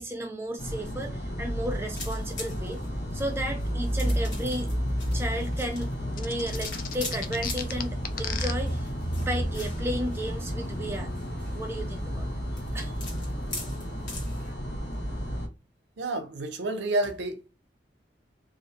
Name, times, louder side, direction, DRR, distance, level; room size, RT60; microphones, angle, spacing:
voice 1, 0.0-2.8 3.1-4.7 5.1-11.1 11.5-12.4 12.7-12.9, right 1 dB, 15° right, 0.4 m, -34 dB
sound 1, 0.6-15.5, equal, 65° left, 0.8 m, -32 dB
sound 2, 1.9-14.5, left 2 dB, 90° left, 1.3 m, -44 dB
sound 3, 6.2-8.5, left 8 dB, 50° left, 0.3 m, -34 dB
voice 2, 16.0-17.5, right 2 dB, 80° right, 0.5 m, -29 dB
2.5 x 2.0 x 2.7 m
head